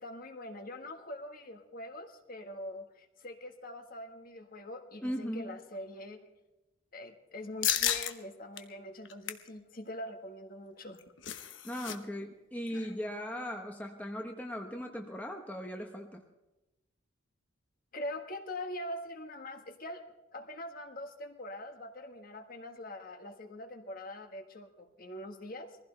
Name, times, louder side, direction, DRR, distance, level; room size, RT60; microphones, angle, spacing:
voice 1, 0.0-6.3 6.9-11.0 17.9-20.0 20.3-25.8, left 1 dB, 45° left, 4 dB, 1.6 m, -43 dB
voice 2, 5.0-5.6 11.6-16.2, equal, 10° left, 2 dB, 1.0 m, -38 dB
sound 1, 7.6-8.1 8.6-8.7 9.0-9.5 10.8-12.0 12.2-12.3 12.7-12.9, left 10 dB, 65° left, 1.1 m, -32 dB
22.0 x 15.5 x 3.3 m, 1.0 s
head